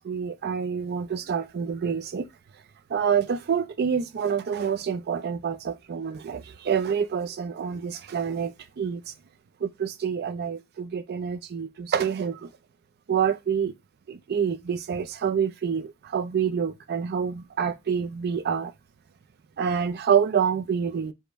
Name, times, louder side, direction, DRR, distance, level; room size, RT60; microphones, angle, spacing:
voice 1, 0.0-2.3 2.9-9.0 9.6-12.5 13.1-13.7 14.1-18.7 19.6-21.1, right 7 dB, 45° right, 0.4 m, -27 dB
5.1 x 2.1 x 4.4 m
head